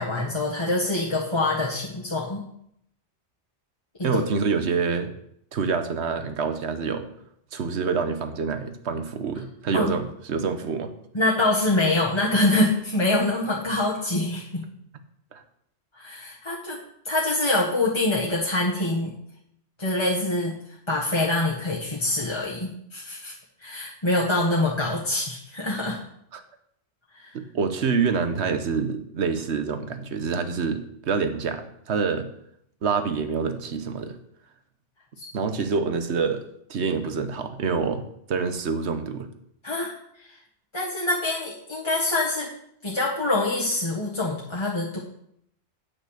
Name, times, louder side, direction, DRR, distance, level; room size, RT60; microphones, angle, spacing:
voice 1, 0.0-2.4 4.0-4.2 9.7-9.9 11.1-14.6 15.9-16.8 17.0-19.1 19.8-23.3 23.6-26.0 27.1-27.3 35.2-35.3 39.6-40.3 40.7-42.5 42.8-45.0, left 2 dB, 25° left, -5 dB, 1.5 m, -25 dB
voice 2, 4.0-5.1 5.5-7.1 7.5-10.9 15.3-15.4 26.3-26.4 27.3-32.3 32.8-34.2 35.3-36.4 36.7-38.0 38.3-39.3, right 5 dB, 75° right, 8 dB, 1.2 m, -26 dB
9.2 x 6.0 x 6.5 m, 0.72 s
omnidirectional pair, 1.2 m